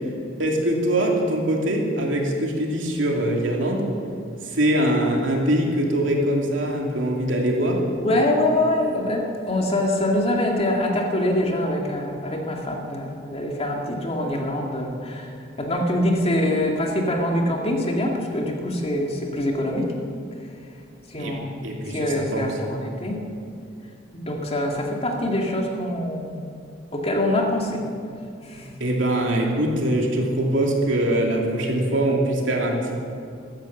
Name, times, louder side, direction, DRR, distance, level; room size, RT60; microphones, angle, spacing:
voice 1, 0.4-3.9 4.4-7.8 21.2-21.3 21.6-22.5 28.8-32.9, right 1 dB, 80° right, 0 dB, 2.8 m, -23 dB
voice 2, 8.0-20.0 21.1-21.6 21.9-23.2 24.1-26.5 26.9-27.8 28.4-28.8, left 1 dB, 30° left, 1 dB, 2.1 m, -24 dB
14.0 x 13.5 x 7.2 m, 2.5 s
head